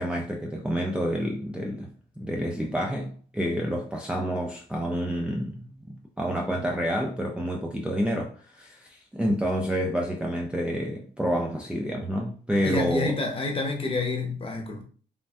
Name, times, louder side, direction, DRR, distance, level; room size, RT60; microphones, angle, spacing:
voice 1, 0.0-1.9 2.2-13.2, equal, 5° right, 0.4 m, -29 dB
voice 2, 12.5-14.8, left 3 dB, 30° left, 0.9 m, -28 dB
3.4 x 2.2 x 2.5 m
cardioid pair, 90°, 20 cm